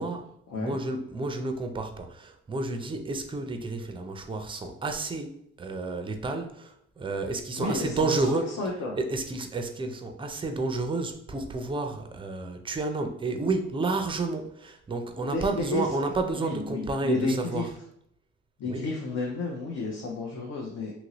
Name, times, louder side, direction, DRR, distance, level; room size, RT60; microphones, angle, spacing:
voice 1, 0.0-8.5 9.0-17.7 18.7-18.9, right 3 dB, 15° right, 5 dB, 0.4 m, -31 dB
voice 2, 7.6-9.0 15.1-15.9 16.3-17.7 18.6-20.9, left 3 dB, 55° left, -1 dB, 0.7 m, -32 dB
2.9 x 2.6 x 2.9 m, 0.74 s
cardioid pair, 90°, 30 cm